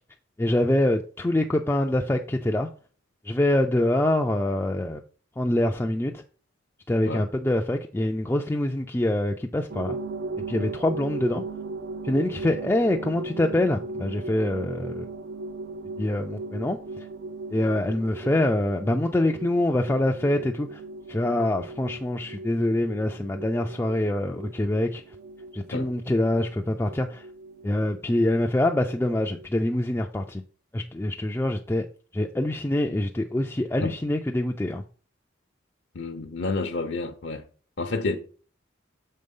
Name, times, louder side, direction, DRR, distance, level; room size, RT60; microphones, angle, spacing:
voice 1, 0.4-2.7 3.2-5.0 5.4-6.2 6.9-10.0 10.5-11.4 12.0-15.1 16.0-17.1 17.5-20.8 21.1-25.2 25.5-27.3 27.6-30.4 30.7-31.8 32.1-34.8, left 1 dB, 10° left, 0.3 m, -25 dB
sound 1, 9.7-29.5, right 3 dB, 60° right, 0.4 m, -38 dB
voice 2, 35.9-37.4 37.8-38.2, left 3 dB, 65° left, 0.7 m, -29 dB
6.6 x 3.9 x 5.3 m
head